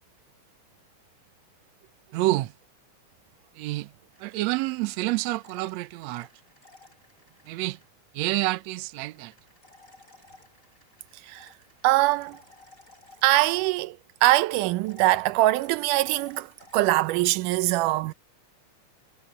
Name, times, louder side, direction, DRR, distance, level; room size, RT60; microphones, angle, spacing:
voice 1, 2.1-2.5 3.6-3.9 4.2-6.3 7.5-7.8 8.1-9.3, right 18 dB, 70° right, 1.8 m, -28 dB
sound 1, 4.1-7.9 9.1-13.8 14.7-17.2, left 2 dB, 25° left, 8.1 m, -56 dB
voice 2, 11.8-12.4 13.2-18.1, right 18 dB, 90° right, 2.2 m, -23 dB
omnidirectional pair, 3.6 m